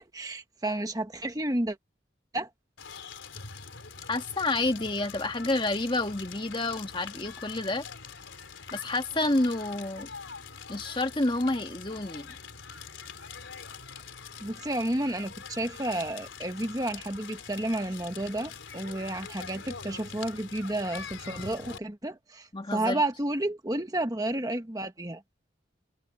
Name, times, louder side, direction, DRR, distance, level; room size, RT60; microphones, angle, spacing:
voice 1, 0.1-1.8 2.3-2.5 14.4-25.2, right 1 dB, 20° right, 1.3 m, -31 dB
Crackle, 2.8-21.8, left 5 dB, 80° left, 3.7 m, -44 dB
voice 2, 4.1-7.8 8.7-10.1 10.7-12.4 22.5-23.0, left 2 dB, 25° left, 1.7 m, -29 dB
head